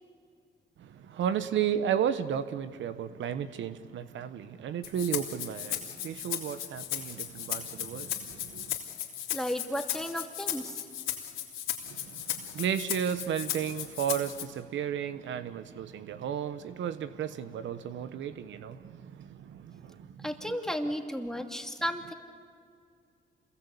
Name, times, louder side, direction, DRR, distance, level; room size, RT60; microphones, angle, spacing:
voice 1, 0.8-8.8 11.9-20.3, right 9 dB, 70° right, 1.1 m, -33 dB
Rattle (instrument), 4.8-14.4, left 11 dB, 90° left, 3.4 m, -36 dB
voice 2, 9.3-10.8 20.2-22.1, equal, 5° left, 2.6 m, -33 dB
27.5 x 22.0 x 8.4 m
cardioid pair, 90°, 20 cm